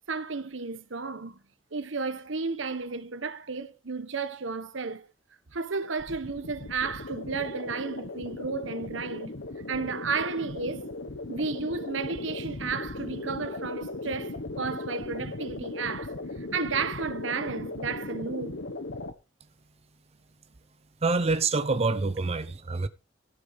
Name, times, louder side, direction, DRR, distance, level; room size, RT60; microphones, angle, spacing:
voice 1, 0.1-1.4 1.7-5.1 5.5-9.3 9.7-10.9 11.3-18.6, right 4 dB, 90° right, 1.1 m, -33 dB
sound 1, 6.0-19.1, left 2 dB, 75° left, 1.4 m, -37 dB
voice 2, 21.0-22.9, right 3 dB, 35° right, 0.6 m, -26 dB
13.0 x 7.0 x 5.0 m
head